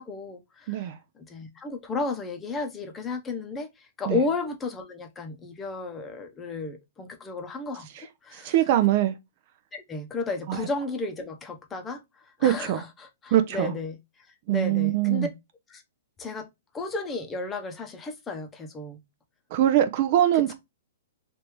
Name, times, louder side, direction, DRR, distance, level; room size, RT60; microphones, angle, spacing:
voice 1, 0.0-0.9 1.2-8.5 9.7-14.0 14.5-15.3 15.7-15.8 16.2-16.5 16.7-19.0 20.3-20.5, left 3 dB, 15° left, 0.7 m, -33 dB
voice 2, 8.4-9.1 10.5-10.6 12.4-12.8 13.3-13.7 14.5-15.3 19.5-20.5, right 12 dB, 45° right, 0.5 m, -22 dB
3.3 x 2.6 x 3.0 m
hypercardioid pair, 135°, 0 cm